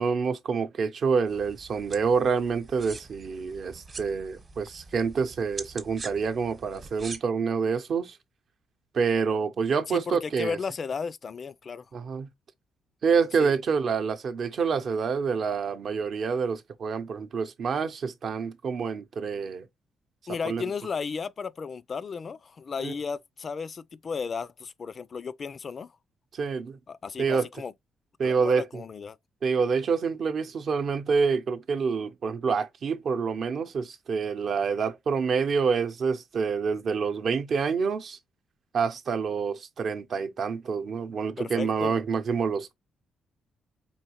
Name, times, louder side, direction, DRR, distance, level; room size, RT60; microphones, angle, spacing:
voice 1, 0.0-8.2 8.9-10.6 11.9-12.3 13.0-19.7 20.3-20.6 22.8-22.9 26.3-26.8 27.2-27.5 28.2-28.8 29.4-38.2 38.7-42.7, right 5 dB, 55° right, 0.7 m, -27 dB
sound 1, 1.3-7.2, right 4 dB, 35° right, 1.0 m, -44 dB
voice 2, 9.9-11.9 13.4-13.5 20.3-25.9 26.9-27.7 28.2-29.2 41.4-41.9, left 5 dB, 45° left, 0.3 m, -34 dB
4.4 x 3.0 x 2.9 m
cardioid pair, 90°, 0 cm